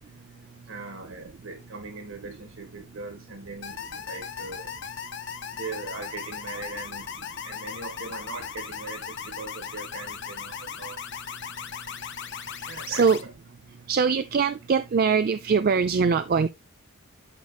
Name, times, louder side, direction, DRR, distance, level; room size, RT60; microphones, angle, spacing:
voice 1, 0.7-3.8 4.1-4.7 5.5-7.0 7.4-11.0 12.7-13.0, right 3 dB, 65° right, 1.9 m, -39 dB
sound 1, 3.6-13.2, left 7 dB, 55° left, 0.8 m, -38 dB
voice 2, 12.9-13.3 13.9-16.5, right 5 dB, 45° right, 0.3 m, -22 dB
11.5 x 4.8 x 2.3 m
head